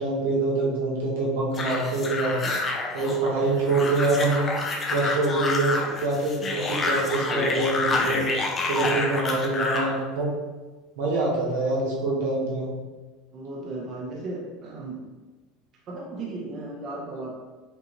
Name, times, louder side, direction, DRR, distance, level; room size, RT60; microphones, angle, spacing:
voice 1, 0.0-2.4 2.9-4.5 4.9-8.2 8.6-10.3 11.0-12.7, right 2 dB, 90° right, -4 dB, 1.3 m, -25 dB
sound 1, 1.5-9.9, left 3 dB, 30° left, 0.7 m, -28 dB
voice 2, 13.3-15.0 15.8-17.4, right 2 dB, 45° right, -3 dB, 0.9 m, -35 dB
5.3 x 2.5 x 3.0 m, 1.2 s
supercardioid pair, 110°, 0 cm